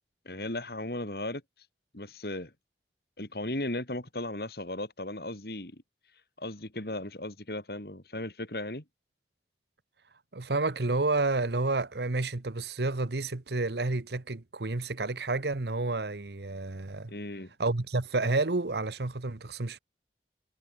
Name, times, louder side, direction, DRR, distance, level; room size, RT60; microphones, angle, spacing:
voice 1, 0.2-1.4 1.9-2.5 3.2-5.8 6.4-8.8 17.1-17.5, left 1 dB, 60° left, 3.4 m, -36 dB
voice 2, 10.3-17.1 17.6-19.8, right 3 dB, 70° right, 1.1 m, -30 dB
head